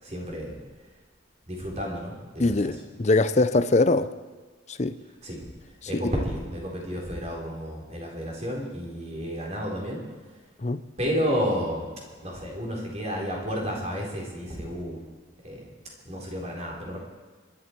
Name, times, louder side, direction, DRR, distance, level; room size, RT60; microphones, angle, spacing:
voice 1, 0.0-0.6 1.5-2.7 5.2-5.5 5.9-10.0 11.0-11.9 12.2-15.0 15.4-15.7 16.0-17.0, equal, 35° right, -2 dB, 4.0 m, -31 dB
voice 2, 2.4-4.1 4.7-5.0 5.8-6.1 10.6-10.8, left 2 dB, 35° left, 12 dB, 0.6 m, -23 dB
26.5 x 11.5 x 4.6 m, 1.4 s
head